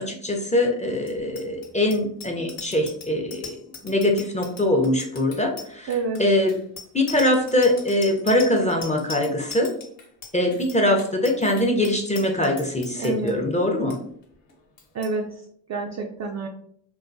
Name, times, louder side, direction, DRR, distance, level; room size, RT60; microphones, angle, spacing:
voice 1, 0.0-3.6 3.8-6.6 6.9-9.7 10.3-14.0, left 1 dB, 15° left, 1 dB, 0.5 m, -22 dB
Bicycle bell, 1.0-13.3 13.7-14.0 14.2-14.5 14.8-15.1, left 5 dB, 60° left, 1.0 m, -40 dB
voice 2, 5.9-6.2 13.0-13.4 14.9-15.3 15.7-16.5, right 4 dB, 35° right, 2 dB, 0.4 m, -28 dB
2.5 x 2.3 x 2.5 m, 0.64 s
hypercardioid pair, 45°, 50 cm